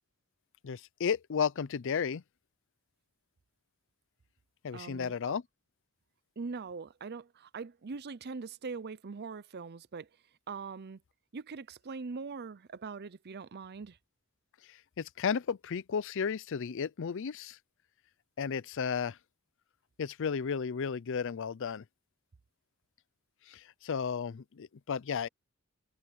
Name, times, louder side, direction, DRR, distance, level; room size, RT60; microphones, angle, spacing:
voice 1, 0.6-2.2 4.6-5.4 14.7-17.6 18.4-19.2 20.0-21.8 23.5-25.3, left 6 dB, 60° left, 0.5 m, -33 dB
voice 2, 4.7-5.4 6.4-10.1 10.5-11.0 11.3-14.0, right 4 dB, 50° right, 0.6 m, -42 dB
head